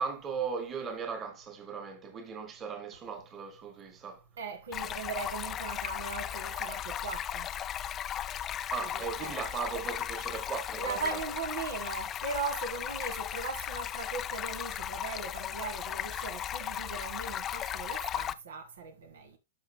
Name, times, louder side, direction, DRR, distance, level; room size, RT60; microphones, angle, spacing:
voice 1, 0.0-4.2 8.7-11.2, right 6 dB, 25° right, 1.7 m, -37 dB
voice 2, 4.4-7.5 8.8-9.3 10.8-19.4, right 4 dB, 80° right, 1.7 m, -39 dB
Stream, 4.7-18.3, left 10 dB, 25° left, 0.4 m, -36 dB
12.5 x 5.0 x 2.2 m
hypercardioid pair, 130°, 0 cm